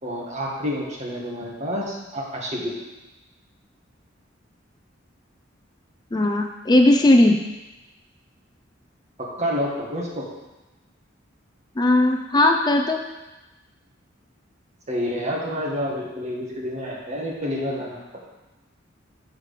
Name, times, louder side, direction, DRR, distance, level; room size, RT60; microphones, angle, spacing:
voice 1, 0.0-2.7 9.2-10.3 14.9-18.0, equal, 35° right, -3 dB, 1.8 m, -28 dB
voice 2, 6.1-7.4 11.8-13.0, left 1 dB, 20° left, 3 dB, 0.4 m, -17 dB
7.2 x 4.8 x 6.6 m, 1.1 s
head